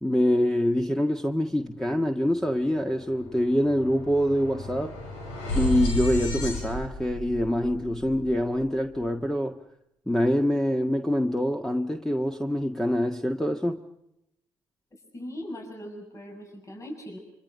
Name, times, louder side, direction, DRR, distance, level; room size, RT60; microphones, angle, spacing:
voice 1, 0.0-4.9 5.5-9.6 10.1-13.8, equal, 5° left, 1.6 m, -25 dB
sound 1, 2.3-2.5 2.8-9.0, left 1 dB, 85° left, 5.7 m, -34 dB
voice 2, 14.9-17.2, equal, 35° left, 7.1 m, -40 dB
26.5 x 26.0 x 5.5 m
hypercardioid pair, 55°, 9 cm